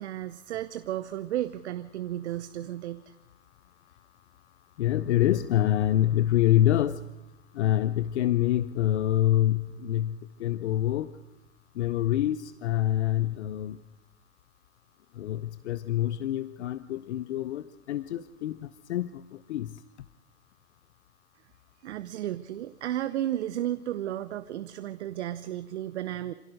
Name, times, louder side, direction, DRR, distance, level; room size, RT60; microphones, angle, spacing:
voice 1, 0.0-3.1 21.8-26.3, right 12 dB, 80° right, 13 dB, 0.9 m, -33 dB
voice 2, 4.8-7.0 7.6-11.1 11.8-13.8 15.2-17.6 17.9-18.6 18.9-19.1 19.5-19.7, left 13 dB, 80° left, 16 dB, 0.8 m, -26 dB
26.5 x 16.0 x 6.4 m, 0.99 s
hypercardioid pair, 100°, 34 cm